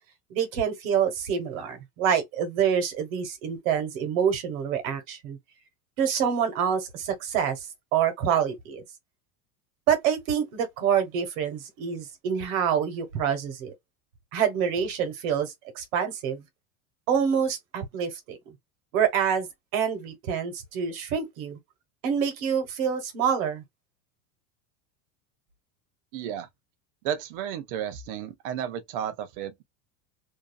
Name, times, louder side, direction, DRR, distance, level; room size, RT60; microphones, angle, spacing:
voice 1, 0.3-5.4 6.0-7.6 7.9-8.8 9.9-13.7 14.3-16.4 17.1-18.4 18.9-19.5 19.7-21.6 22.0-23.6, right 8 dB, 60° right, 1.2 m, -26 dB
voice 2, 26.1-26.5 27.0-29.6, right 9 dB, 40° right, 0.5 m, -33 dB
2.6 x 2.3 x 2.3 m
supercardioid pair, 180°, 45 cm